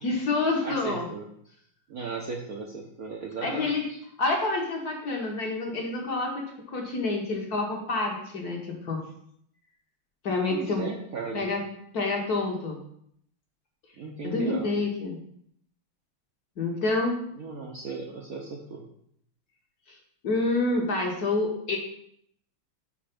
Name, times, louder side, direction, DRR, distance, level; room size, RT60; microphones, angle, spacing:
voice 1, 0.0-1.0 3.4-3.8 4.2-6.3 6.7-9.0 10.2-10.8 11.3-11.6 11.9-12.8 14.2-15.2 16.6-17.2 20.2-21.8, left 3 dB, 55° left, 0 dB, 1.3 m, -27 dB
voice 2, 0.6-1.2 1.9-4.0 10.5-11.5 14.0-14.7 17.4-18.9, right 4 dB, 65° right, -1 dB, 0.9 m, -36 dB
5.5 x 5.0 x 5.1 m, 0.70 s
omnidirectional pair, 2.4 m